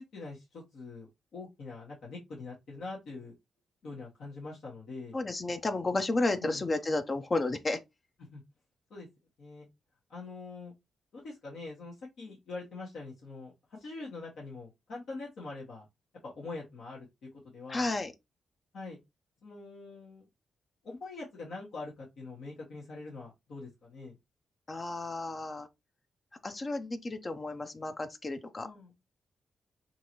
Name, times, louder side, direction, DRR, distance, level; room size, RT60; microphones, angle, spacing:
voice 1, 0.0-3.3 3.8-5.2 6.4-6.6 8.3-8.4 8.9-9.1 9.4-9.7 10.1-10.7 11.1-13.5 13.8-15.8 16.2-17.1 17.5-17.9 18.7-19.0 19.4-20.2 20.8-24.2 28.6-28.9, left 3 dB, 70° left, 1.2 m, -44 dB
voice 2, 5.1-7.8 17.7-18.1 24.7-25.7 26.4-28.7, left 2 dB, 40° left, 0.5 m, -32 dB
3.8 x 2.7 x 2.9 m
supercardioid pair, 55°, 0 cm